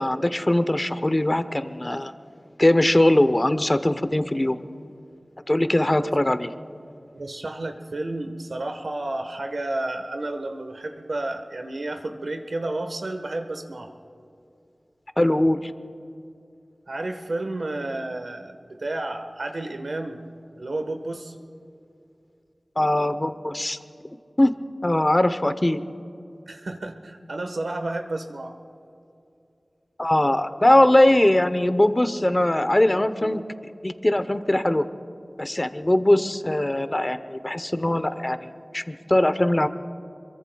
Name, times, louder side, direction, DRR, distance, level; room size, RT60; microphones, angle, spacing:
voice 1, 0.0-2.1 2.6-4.6 5.5-6.5 15.2-15.7 22.8-23.8 24.4-24.5 24.8-25.8 30.0-33.4 33.8-34.9 35.4-39.7, left 1 dB, 30° left, 11 dB, 0.8 m, -21 dB
voice 2, 7.1-13.9 16.9-20.2 20.6-21.3 26.5-28.6, right 2 dB, 85° right, 5 dB, 1.3 m, -31 dB
26.0 x 22.5 x 2.3 m, 2.6 s
wide cardioid pair, 60°, 0 cm